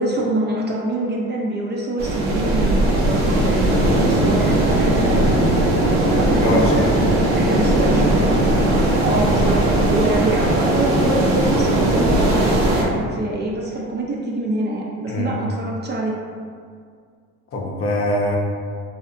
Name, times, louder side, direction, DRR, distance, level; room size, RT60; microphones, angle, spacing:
voice 1, 0.0-5.3 6.1-6.8 7.3-16.1, right 2 dB, 35° right, -2 dB, 0.4 m, -25 dB
sound 1, 2.0-12.8, right 1 dB, 90° right, 0.6 m, -18 dB
voice 2, 6.3-7.0 9.0-9.2 15.1-15.4 17.5-18.4, left 1 dB, 40° left, -2 dB, 0.6 m, -23 dB
2.6 x 2.2 x 2.5 m, 2.1 s
supercardioid pair, 75°, 34 cm